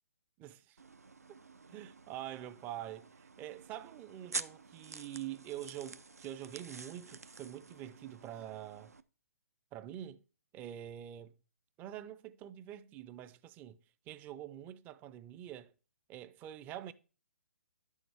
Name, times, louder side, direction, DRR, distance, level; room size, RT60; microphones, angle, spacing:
voice 1, 0.4-0.8 1.7-8.9 9.7-10.2 10.5-11.4 11.8-15.7 16.1-16.9, right 11 dB, 20° right, 0.5 m, -46 dB
sound 1, 0.8-9.0, right 4 dB, 85° right, 0.6 m, -48 dB
10.5 x 6.3 x 3.5 m
figure-of-eight pair, 130°, 8 cm